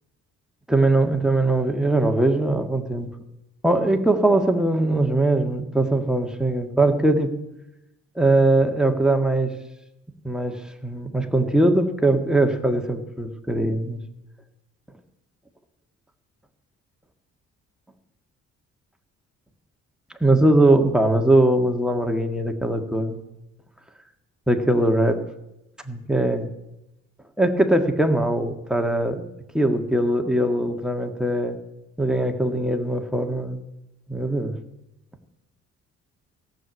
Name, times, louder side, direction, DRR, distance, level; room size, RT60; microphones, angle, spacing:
voice 1, 0.7-3.1 3.6-7.3 8.1-9.5 10.2-14.0 20.2-23.2 24.5-25.2 25.8-26.5 27.4-29.2 29.5-31.6 32.0-33.6 34.1-34.5, right 1 dB, ahead, 4 dB, 1.7 m, -21 dB
15.0 x 7.9 x 9.5 m, 0.90 s
cardioid pair, 90°, 30 cm